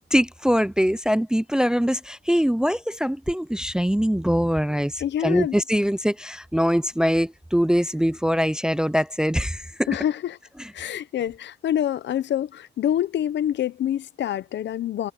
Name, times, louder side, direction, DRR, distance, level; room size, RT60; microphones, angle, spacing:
voice 1, 0.1-9.9, equal, 5° right, 0.5 m, -23 dB
voice 2, 5.0-5.6 9.9-10.4 10.7-15.1, left 11 dB, 65° left, 0.8 m, -26 dB
cardioid pair, 90°, 20 cm